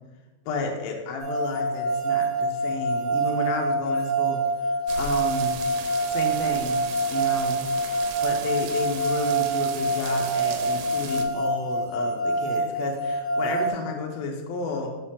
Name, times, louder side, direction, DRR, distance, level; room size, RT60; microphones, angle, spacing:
voice 1, 0.4-5.6 6.1-7.6 8.2-14.9, left 3 dB, 75° left, 1 dB, 1.6 m, -32 dB
sound 1, 1.2-13.7, right 2 dB, 45° right, 2.5 m, -26 dB
sound 2, 4.9-11.3, right 7 dB, 85° right, 2.3 m, -37 dB
6.8 x 5.5 x 3.7 m, 1.2 s
omnidirectional pair, 4.0 m